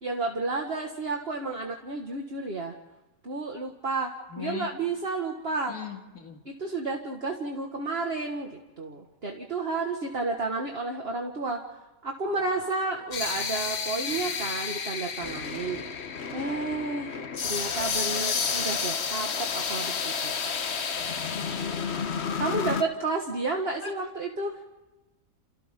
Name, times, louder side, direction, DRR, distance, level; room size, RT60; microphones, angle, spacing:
voice 1, 0.0-2.7 3.2-4.1 4.4-5.7 6.5-11.6 12.0-15.9 16.3-20.3 22.4-24.6, right 3 dB, 45° right, 2 dB, 2.0 m, -31 dB
voice 2, 4.3-4.7 5.7-6.4 23.8-23.9, left 6 dB, 90° left, 2 dB, 2.5 m, -38 dB
psycho texture, 12.3-22.8, left 6 dB, 50° left, 1.3 m, -31 dB
29.0 x 28.5 x 3.8 m, 1.1 s
omnidirectional pair, 1.5 m